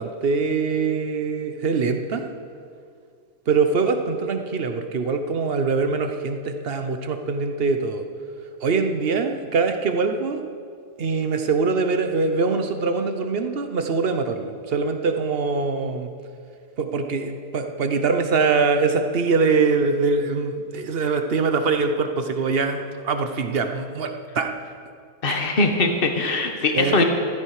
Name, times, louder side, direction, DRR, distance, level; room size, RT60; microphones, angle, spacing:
voice 1, 0.0-2.2 3.5-8.0 8.6-10.4 11.0-16.1 16.8-24.5 25.3-25.4 26.7-27.0, right 4 dB, 45° right, 7 dB, 1.0 m, -23 dB
voice 2, 25.2-27.0, left 3 dB, 35° left, 4 dB, 1.4 m, -21 dB
14.5 x 13.5 x 4.9 m, 2.2 s
omnidirectional pair, 1.7 m